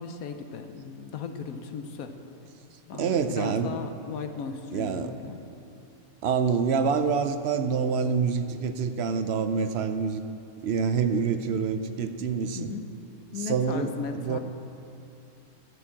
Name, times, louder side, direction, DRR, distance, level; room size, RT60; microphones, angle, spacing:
voice 1, 0.0-2.1 2.8-5.4 12.5-12.9 13.3-14.4, left 5 dB, 75° left, 7 dB, 1.2 m, -36 dB
voice 2, 2.9-3.7 4.7-5.1 6.2-10.2 10.6-12.7 13.4-14.4, right 6 dB, 60° right, 9 dB, 0.7 m, -26 dB
12.5 x 7.0 x 7.5 m, 2.6 s
omnidirectional pair, 1.5 m